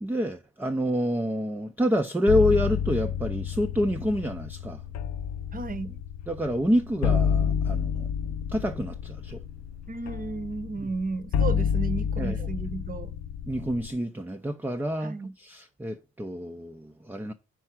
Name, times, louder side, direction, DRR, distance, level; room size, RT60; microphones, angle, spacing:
voice 1, 0.0-4.8 6.3-8.1 8.5-9.4 10.8-10.9 12.2-12.5 13.5-17.3, equal, 5° right, 0.4 m, -28 dB
sound 1, 2.3-13.9, left 7 dB, 60° left, 0.6 m, -29 dB
voice 2, 5.5-6.0 9.9-13.1 15.0-15.3, right 3 dB, 30° right, 0.8 m, -33 dB
4.7 x 4.5 x 5.8 m
cardioid pair, 90°, 30 cm